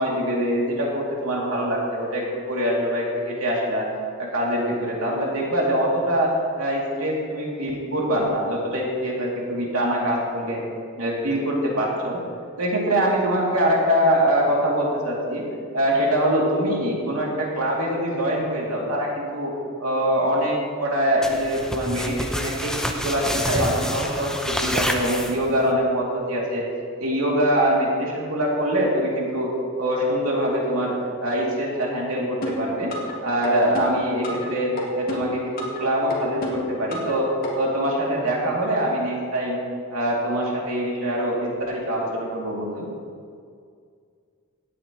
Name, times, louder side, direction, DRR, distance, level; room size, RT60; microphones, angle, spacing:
voice 1, 0.0-3.9 4.2-10.6 11.0-12.2 12.6-15.4 15.7-19.5 19.8-26.7 27.0-29.5 29.8-30.9 31.2-32.9 33.2-39.6 39.9-42.9, equal, 75° right, -3 dB, 2.6 m, -24 dB
sound 1, 21.2-25.7, equal, 5° left, 0.6 m, -28 dB
sound 2, 32.4-33.1 33.4-34.5 34.8-35.8 36.1-37.1 37.4-37.5, left 1 dB, 45° left, 2.0 m, -30 dB
17.0 x 9.1 x 3.0 m, 2.2 s
head